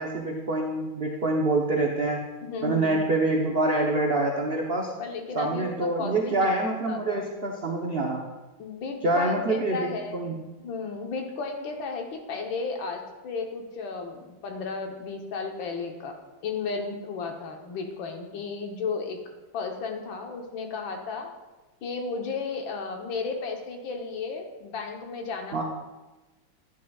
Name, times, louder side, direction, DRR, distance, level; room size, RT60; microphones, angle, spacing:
voice 1, 0.0-2.2 2.6-4.9 5.3-8.2 9.0-10.3 25.5-25.6, right 2 dB, 80° right, 0 dB, 0.5 m, -26 dB
voice 2, 2.4-3.0 5.0-7.2 8.6-10.3 10.6-16.1 16.4-19.2 19.5-21.3 21.8-25.6, left 4 dB, 70° left, 3 dB, 1.7 m, -34 dB
10.5 x 10.5 x 2.3 m, 1.1 s
omnidirectional pair, 2.2 m